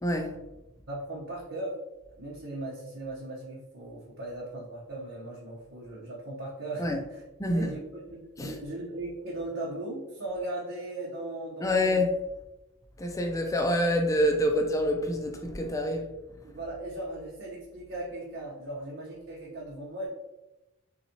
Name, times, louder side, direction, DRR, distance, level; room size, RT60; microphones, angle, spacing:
voice 1, 0.0-0.4 6.8-7.0 7.4-7.7 8.4-8.6 11.6-12.1 13.0-16.0, left 1 dB, 15° left, 0.5 m, -26 dB
voice 2, 0.9-1.8 2.2-7.2 7.5-12.0 16.5-20.1, right 2 dB, 65° right, 1.1 m, -38 dB
4.1 x 3.9 x 3.0 m
head